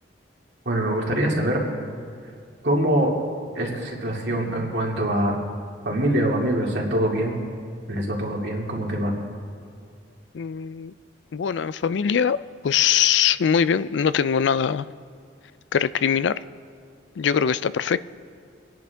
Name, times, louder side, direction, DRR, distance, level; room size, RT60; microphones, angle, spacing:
voice 1, 0.7-1.6 2.6-3.1 3.5-5.4 5.9-7.4 7.9-9.1, right 1 dB, 70° right, -2 dB, 2.4 m, -24 dB
voice 2, 10.3-10.9 11.3-12.4 12.6-14.9 15.7-16.4 17.2-18.0, left 7 dB, 85° left, 16 dB, 0.4 m, -22 dB
25.0 x 10.5 x 3.5 m, 2.3 s
head